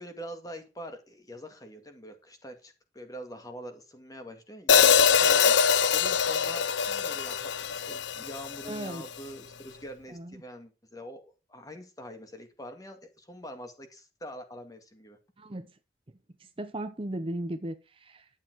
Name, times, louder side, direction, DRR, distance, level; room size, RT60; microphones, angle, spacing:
voice 1, 0.0-15.2, equal, 20° left, 2.0 m, -44 dB
Hi-hat, 4.7-8.9, left 7 dB, 85° left, 0.7 m, -23 dB
voice 2, 8.6-9.0 10.1-10.3 15.4-15.7 16.4-18.3, right 1 dB, 30° right, 0.7 m, -36 dB
11.5 x 7.5 x 4.7 m
head